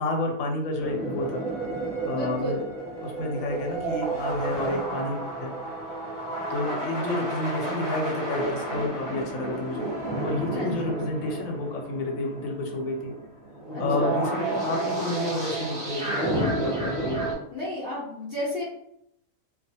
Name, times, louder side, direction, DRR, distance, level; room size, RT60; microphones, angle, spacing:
voice 1, 0.0-1.4 2.0-2.6 3.0-5.6 6.5-9.9 10.2-13.1 13.8-17.2, left 2 dB, 80° left, 2 dB, 1.0 m, -30 dB
sound 1, 0.8-17.3, right 2 dB, 35° right, 0.8 m, -31 dB
voice 2, 2.1-2.6 10.5-11.0 13.7-14.2 17.5-18.6, left 1 dB, 55° left, -6 dB, 0.7 m, -32 dB
2.4 x 2.3 x 2.7 m, 0.75 s
omnidirectional pair, 1.4 m